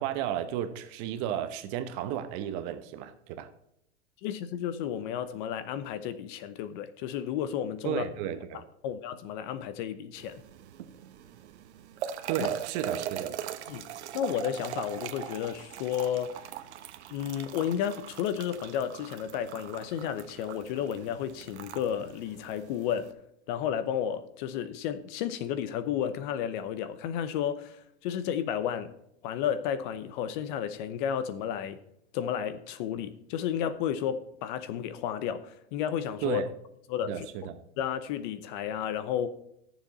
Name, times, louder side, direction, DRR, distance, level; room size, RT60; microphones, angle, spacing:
voice 1, 0.0-3.5 7.8-8.6 12.3-13.4 36.2-36.5 37.0-37.5, right 10 dB, 40° right, 1.0 m, -33 dB
voice 2, 4.2-8.0 8.8-10.4 12.4-12.5 13.7-13.8 14.1-16.4 17.1-23.1 23.5-28.9 29.2-31.8 32.1-36.4 36.9-37.3 37.8-39.3, left 9 dB, 45° left, 0.8 m, -32 dB
sound 1, 10.2-23.1, right 10 dB, 75° right, 1.1 m, -41 dB
13.5 x 7.2 x 4.1 m
supercardioid pair, 145°, 34 cm